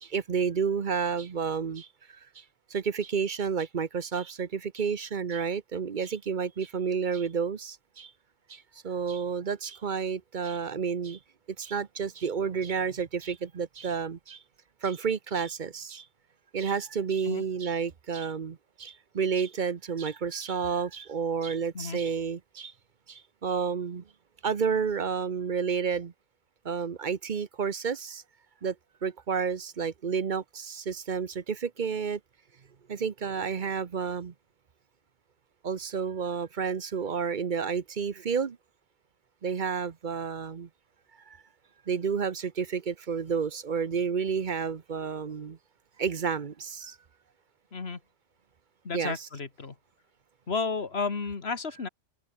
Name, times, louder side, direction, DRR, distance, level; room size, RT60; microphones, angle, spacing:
voice 1, 0.0-2.4 2.7-8.1 8.5-11.2 11.6-14.4 14.8-16.1 16.5-22.7 23.1-24.0 24.4-26.1 26.6-28.2 28.6-28.8 29.0-32.2 32.9-34.3 35.6-38.6 39.4-40.7 41.3-41.4 41.9-45.6 46.0-47.0 48.9-49.3, right 6 dB, 45° right, 1.0 m, -30 dB
voice 2, 48.8-49.8 50.5-51.9, left 4 dB, 60° left, 2.2 m, -32 dB
open air
omnidirectional pair, 1.2 m